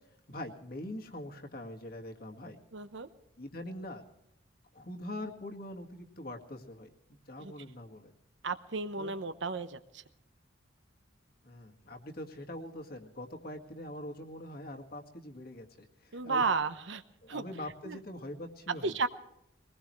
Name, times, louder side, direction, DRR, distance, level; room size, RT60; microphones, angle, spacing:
voice 1, 0.3-2.6 3.4-4.0 4.7-8.1 8.9-9.1 11.4-16.5 17.2-19.0, left 1 dB, 50° left, 2 dB, 1.9 m, -43 dB
voice 2, 2.7-3.1 7.4-7.5 8.4-10.0 16.1-17.0 17.3-17.4 17.8-18.0 18.7-19.1, right 4 dB, 75° right, 11 dB, 0.9 m, -33 dB
21.5 x 19.5 x 3.2 m, 0.80 s
head